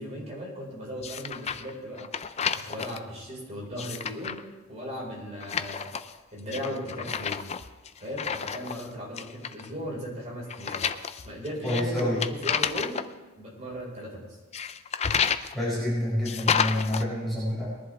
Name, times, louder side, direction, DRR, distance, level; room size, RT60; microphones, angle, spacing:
voice 1, 0.0-2.1 2.5-5.9 6.3-7.4 8.0-10.8 11.2-13.0 13.4-14.4, equal, 30° right, -3 dB, 4.7 m, -37 dB
sound 1, 1.0-1.7 2.0-3.0 3.6-4.4 5.4-6.2 6.5-8.9 9.2-9.7 10.5-13.1 14.5-15.5 16.2-17.0, left 7 dB, 30° left, 0.4 m, -30 dB
voice 2, 11.6-12.2 15.5-17.6, left 1 dB, ahead, -9 dB, 5.3 m, -27 dB
21.0 x 11.0 x 3.4 m, 1.2 s
head